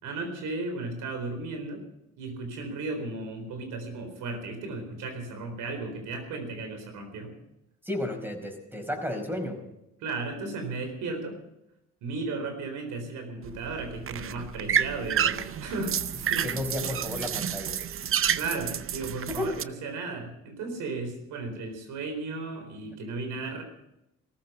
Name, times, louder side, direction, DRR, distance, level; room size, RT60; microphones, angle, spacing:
voice 1, 0.0-1.8 2.2-7.4 10.0-11.4 12.0-16.7 18.3-23.6, right 3 dB, 90° right, 6 dB, 4.2 m, -35 dB
voice 2, 7.8-9.6 16.4-17.8 19.3-19.5, left 1 dB, 5° right, 4 dB, 4.9 m, -32 dB
sound 1, 13.4-19.6, right 9 dB, 45° right, 0.7 m, -30 dB
17.5 x 14.5 x 5.6 m, 0.84 s
cardioid pair, 90°, 30 cm